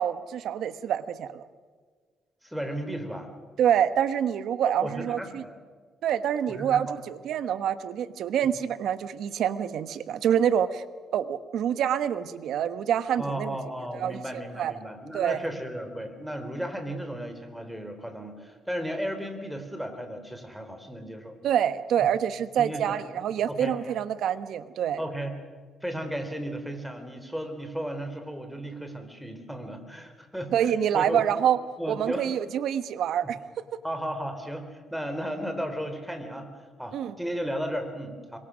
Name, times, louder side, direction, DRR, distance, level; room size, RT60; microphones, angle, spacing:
voice 1, 0.0-1.4 3.6-5.4 6.0-10.8 11.1-13.6 13.9-14.7 15.1-15.4 21.4-25.0 30.5-31.6 31.9-33.4 36.9-37.1, right 9 dB, 75° right, 12 dB, 1.2 m, -26 dB
voice 2, 2.4-3.3 4.6-5.6 6.5-6.9 13.2-21.5 22.6-23.0 23.5-23.7 25.0-25.3 25.8-31.2 31.8-32.3 33.2-33.3 33.8-36.5 36.8-38.4, equal, ahead, 7 dB, 4.0 m, -34 dB
26.5 x 23.0 x 6.4 m, 1.5 s
cardioid pair, 95°, 0 cm